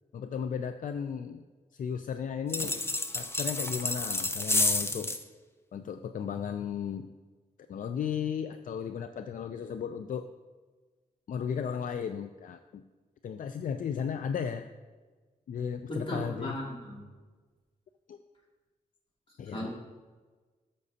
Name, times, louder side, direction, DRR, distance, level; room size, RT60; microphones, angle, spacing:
voice 1, 0.1-1.4 1.7-2.8 3.1-5.2 5.7-7.1 7.7-10.3 11.3-12.8 13.2-14.7 15.5-16.5 18.1-18.2 19.4-19.7, left 7 dB, 70° left, 8 dB, 0.4 m, -35 dB
sound 1, 2.5-5.2, left 2 dB, 15° left, 0.5 m, -30 dB
voice 2, 15.9-17.0 19.5-19.7, equal, 35° left, -4 dB, 2.6 m, -36 dB
13.5 x 6.4 x 2.8 m, 1.3 s
wide cardioid pair, 100°, 14 cm